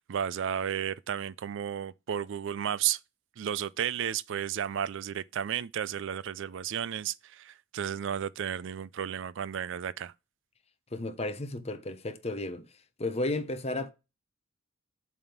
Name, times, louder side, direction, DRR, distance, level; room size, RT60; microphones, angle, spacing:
voice 1, 0.0-3.0 3.4-10.1, right 9 dB, 65° right, 0.4 m, -33 dB
voice 2, 10.9-12.6 13.0-13.9, left 2 dB, 30° left, 0.9 m, -33 dB
7.3 x 3.5 x 5.9 m
head